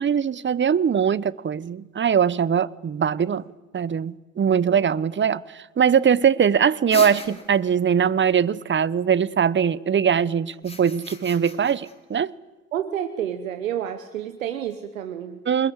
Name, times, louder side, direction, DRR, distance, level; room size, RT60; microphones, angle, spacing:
voice 1, 0.0-3.4 3.7-12.3 15.5-15.7, right 7 dB, 30° right, 0.9 m, -21 dB
sound 1, 6.9-7.7 10.5-11.9, left 2 dB, 15° left, 5.3 m, -36 dB
voice 2, 12.7-15.4, right 10 dB, 90° right, 1.1 m, -29 dB
26.0 x 21.5 x 9.9 m
hypercardioid pair, 55°, 39 cm